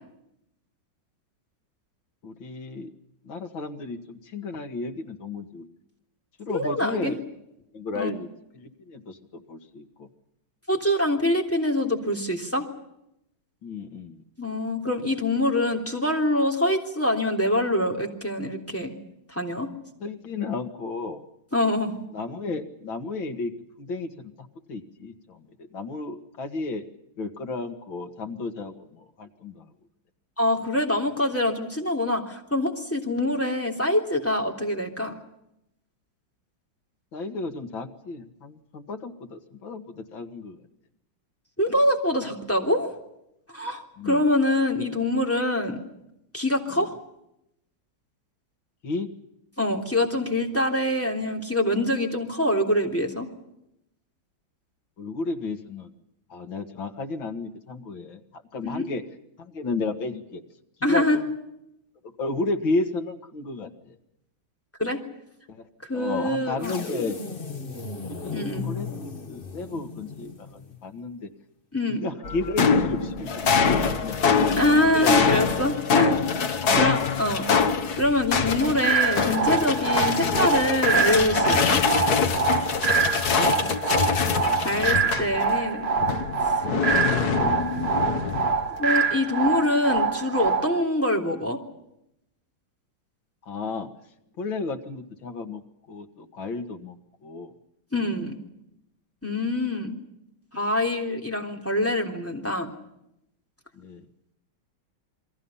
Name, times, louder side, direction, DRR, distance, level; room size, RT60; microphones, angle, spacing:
voice 1, 2.2-2.9 3.2-5.7 6.4-7.2 7.7-8.3 8.5-10.1 13.6-14.2 20.0-21.2 22.1-23.5 23.8-26.8 27.2-29.7 37.1-40.6 44.0-44.2 46.7-46.9 48.8-49.1 55.0-55.9 56.3-59.0 59.4-60.4 60.8-61.3 62.0-64.0 65.5-65.7 65.9-67.2 68.0-71.3 71.9-74.1 74.5-74.6 74.9-75.3 76.5-76.9 83.2-83.8 84.8-85.2 93.5-93.9 94.4-95.6 95.9-97.0 97.2-97.5 98.0-98.3 103.7-104.1, left 3 dB, 75° left, 5 dB, 2.8 m, -33 dB
voice 2, 6.5-7.1 7.9-8.1 10.7-12.7 14.4-18.9 19.3-19.7 21.5-21.9 30.4-35.1 41.6-42.9 43.5-45.8 46.3-46.9 49.6-53.3 58.6-58.9 60.8-61.2 64.8-65.0 65.8-66.8 68.3-68.6 71.7-72.0 74.6-76.2 76.7-77.5 78.0-81.8 84.6-85.9 86.5-86.6 87.1-87.9 88.8-91.6 97.9-98.4 99.2-99.9 100.5-102.7, left 1 dB, 5° left, 2 dB, 3.2 m, -25 dB
sound 1, 66.6-70.9, left 4 dB, 30° left, 1.5 m, -36 dB
sound 2, 72.2-85.6 86.0-88.7, left 5 dB, 55° left, 1.8 m, -24 dB
sound 3, 78.8-90.8, right 5 dB, 40° right, 1.2 m, -25 dB
29.0 x 22.5 x 5.7 m, 0.83 s
omnidirectional pair, 2.2 m